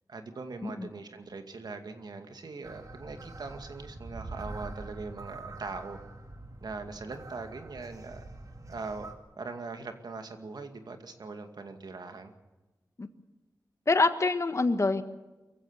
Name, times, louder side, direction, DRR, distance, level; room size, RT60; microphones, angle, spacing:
voice 1, 0.1-6.0 6.6-8.2 8.7-9.1 9.4-12.3, right 3 dB, 75° right, 6 dB, 2.3 m, -41 dB
sound 1, 2.6-9.1, right 2 dB, 55° right, 2.4 m, -45 dB
voice 2, 13.9-15.0, left 3 dB, 45° left, 9 dB, 1.6 m, -25 dB
24.0 x 15.5 x 8.3 m, 1.1 s
wide cardioid pair, 100°, 7 cm